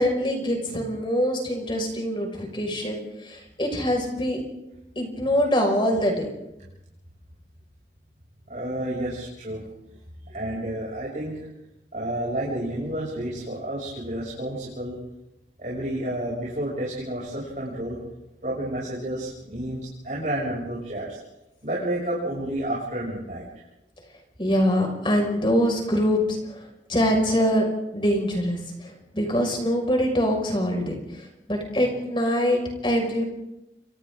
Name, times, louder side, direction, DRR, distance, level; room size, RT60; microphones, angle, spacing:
voice 1, 0.0-4.4 5.0-6.3 24.4-27.7 27.9-33.2, equal, 30° left, 2 dB, 5.8 m, -24 dB
voice 2, 8.5-9.6 10.3-11.5 11.9-15.0 15.6-18.0 18.4-21.2 21.6-23.4, right 1 dB, 45° right, -6 dB, 7.2 m, -30 dB
30.0 x 26.5 x 3.9 m, 0.91 s
head